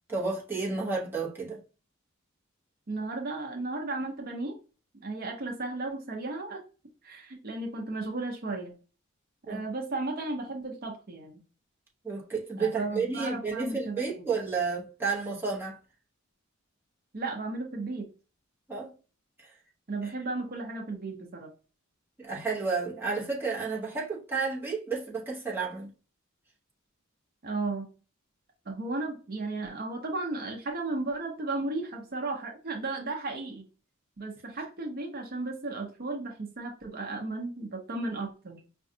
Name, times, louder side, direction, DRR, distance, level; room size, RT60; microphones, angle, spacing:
voice 1, 0.1-1.6 9.5-9.6 12.0-15.8 18.7-18.9 19.4-19.5 20.0-20.1 22.2-25.9, right 4 dB, 10° right, 0.9 m, -31 dB
voice 2, 2.9-4.6 4.9-6.6 7.0-8.7 9.5-11.4 12.6-14.3 17.1-18.1 19.9-21.5 27.4-27.9 28.7-33.7 34.2-38.6, right 2 dB, 45° right, 0.7 m, -34 dB
4.9 x 2.3 x 2.6 m
head